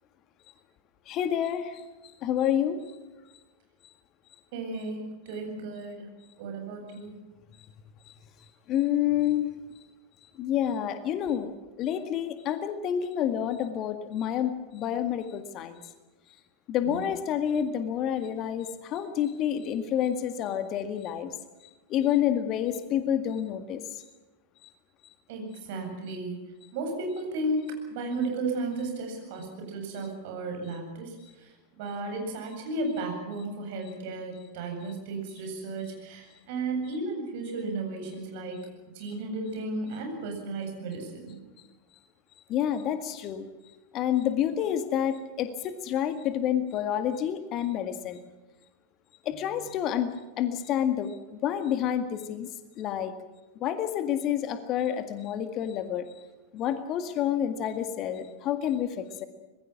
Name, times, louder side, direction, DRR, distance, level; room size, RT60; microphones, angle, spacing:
voice 1, 1.1-1.8 2.2-2.9 8.7-9.5 10.4-11.5 11.8-15.8 16.7-21.3 21.9-24.0 24.6-24.7 42.5-43.5 43.9-48.2 49.2-51.2 51.4-52.5 52.8-53.2 53.6-56.1 56.5-59.2, left 10 dB, 35° left, 9 dB, 1.8 m, -28 dB
voice 2, 4.5-6.1 6.4-7.1 16.9-17.0 25.3-26.4 26.7-38.7 38.9-41.4, right 2 dB, 50° right, 3 dB, 7.9 m, -34 dB
25.5 x 21.5 x 6.1 m, 1.1 s
figure-of-eight pair, 90°, 0 cm